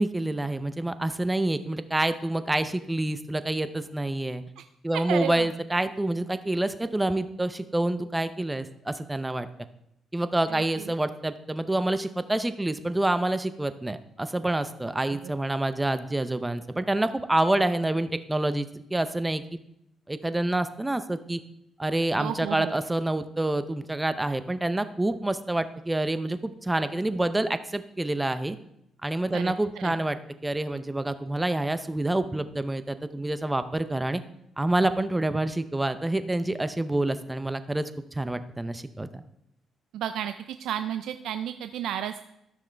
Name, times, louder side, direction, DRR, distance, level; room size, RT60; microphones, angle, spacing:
voice 1, 0.0-4.4 4.8-9.5 10.1-19.4 20.1-21.4 21.8-28.6 29.0-34.2 34.6-39.2, right 1 dB, 15° right, 11 dB, 0.6 m, -27 dB
voice 2, 5.1-5.5 10.5-10.9 15.1-15.2 22.2-22.7 29.3-29.9 39.9-40.3 40.6-42.3, right 10 dB, 80° right, 9 dB, 0.4 m, -33 dB
13.5 x 6.2 x 3.4 m, 0.78 s
cardioid pair, 90°, 0 cm